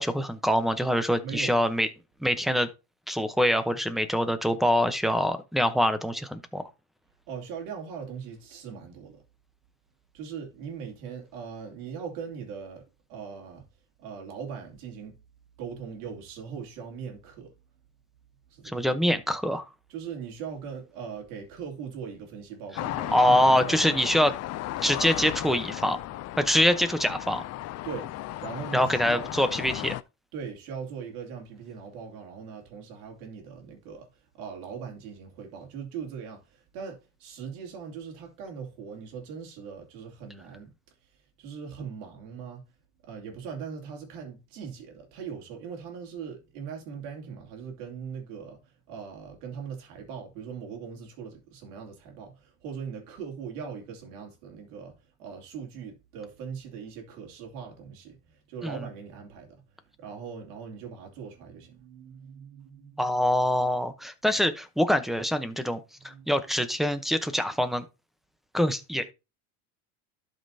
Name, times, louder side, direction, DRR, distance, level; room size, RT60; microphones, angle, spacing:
voice 1, 0.0-1.9 2.2-2.7 3.1-6.7 18.6-19.6 23.1-24.3 24.8-26.0 26.4-27.4 28.7-29.9 58.6-58.8 63.0-67.8 68.5-69.1, equal, ahead, 0.8 m, -24 dB
voice 2, 1.2-1.6 7.3-9.2 10.1-12.8 13.1-13.7 14.0-15.1 15.6-17.5 18.5-18.9 19.9-24.0 27.8-28.1 28.4-29.3 30.3-34.1 34.4-40.7 41.4-42.6 43.0-59.6 60.0-63.1 66.0-66.3, right 6 dB, 90° right, 2.9 m, -40 dB
sound 1, 22.7-30.0, left 15 dB, 35° left, 0.4 m, -35 dB
12.0 x 5.5 x 2.8 m
supercardioid pair, 125°, 44 cm